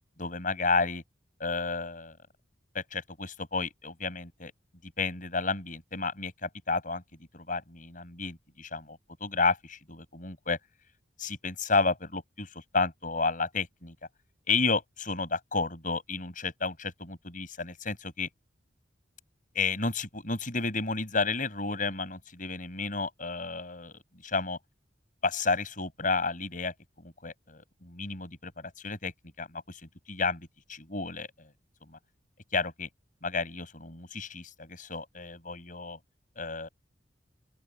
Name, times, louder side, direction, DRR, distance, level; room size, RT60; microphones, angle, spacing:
voice 1, 0.2-1.0 1.4-2.2 2.7-4.5 4.8-7.0 7.3-10.6 11.2-13.9 14.5-18.3 19.5-24.6 25.2-29.1 29.4-29.8 30.1-31.5 31.9-32.0 32.5-32.9 33.2-36.0 36.4-36.7, left 4 dB, 45° left, 8.0 m, -32 dB
open air
head